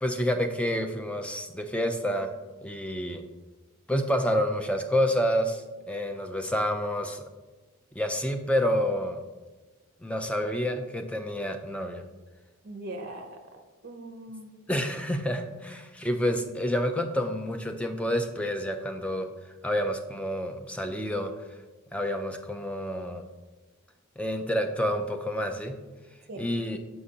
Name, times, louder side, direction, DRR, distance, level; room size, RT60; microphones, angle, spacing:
voice 1, 0.0-2.4 2.6-3.2 3.9-7.3 7.9-9.2 10.0-12.0 14.7-19.3 19.6-21.4 21.9-23.2 24.2-25.8 26.4-26.8, equal, 5° left, 6 dB, 0.3 m, -28 dB
voice 2, 12.6-14.5 26.3-26.5, right 1 dB, 45° right, 4 dB, 0.5 m, -41 dB
6.5 x 5.8 x 2.7 m, 1.2 s
head